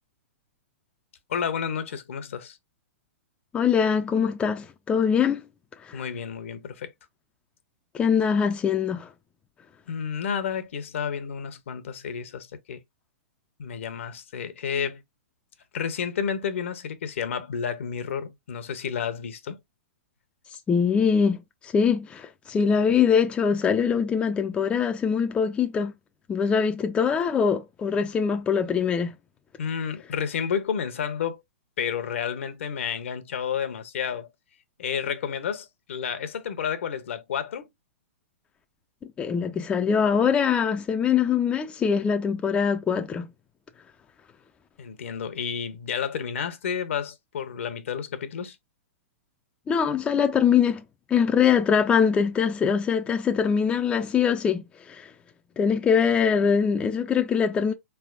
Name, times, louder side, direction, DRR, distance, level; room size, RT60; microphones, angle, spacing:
voice 1, 1.3-2.6 5.9-6.9 9.9-12.8 13.6-15.0 15.7-19.6 29.6-31.4 31.8-34.3 34.8-37.7 44.8-48.6, left 7 dB, 70° left, 0.8 m, -31 dB
voice 2, 3.5-5.4 5.8-6.0 7.9-9.1 20.7-25.9 26.3-29.1 39.2-43.3 49.7-50.8 51.1-55.1 55.6-57.7, left 6 dB, 15° left, 0.4 m, -23 dB
4.3 x 3.4 x 2.3 m
hypercardioid pair, 125°, 7 cm